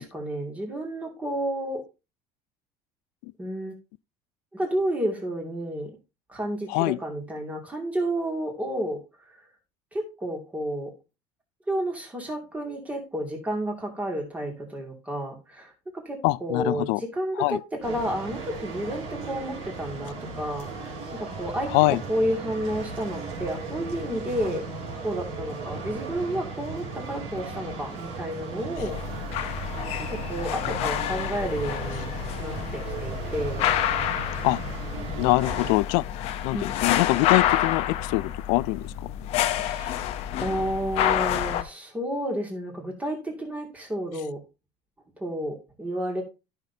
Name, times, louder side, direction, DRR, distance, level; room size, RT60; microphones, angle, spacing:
voice 1, 0.0-1.8 3.4-3.8 4.5-5.9 6.3-9.0 9.9-10.9 11.7-15.7 16.1-21.7 22.1-24.6 25.0-29.5 30.1-32.1 32.4-33.6 36.5-36.7 39.6-44.4 45.2-46.2, right 1 dB, 10° right, 2.3 m, -31 dB
voice 2, 16.2-17.0 17.4-17.6 21.7-22.0 34.4-34.6 35.2-36.0 36.4-39.1, left 21 dB, 80° left, 0.4 m, -24 dB
sound 1, 17.8-35.7, right 4 dB, 50° right, 3.3 m, -36 dB
sound 2, 28.8-41.6, left 11 dB, 55° left, 0.7 m, -28 dB
13.0 x 5.9 x 2.7 m
cardioid pair, 165°, 13 cm